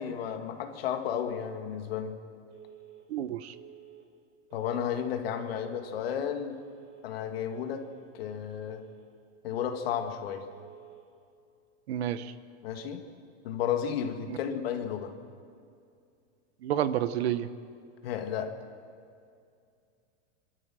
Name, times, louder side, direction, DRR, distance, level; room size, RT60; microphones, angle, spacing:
voice 1, 0.0-2.2 4.5-6.6 7.0-7.9 8.1-8.9 9.4-10.5 12.6-13.0 13.4-15.2 18.0-18.5, left 8 dB, 55° left, 6 dB, 1.9 m, -33 dB
Telephone, 2.5-3.0 3.5-4.0 4.5-5.0 5.5-6.0 6.5-7.0 7.5-8.0 8.5-9.0 9.5-10.0 10.5-11.0, right 11 dB, 35° right, 4.9 m, -51 dB
voice 2, 3.1-3.5 11.9-12.3 14.3-14.4 16.6-17.5, right 11 dB, 60° right, 14 dB, 0.9 m, -30 dB
28.0 x 13.0 x 7.6 m, 2.4 s
supercardioid pair, 180°, 36 cm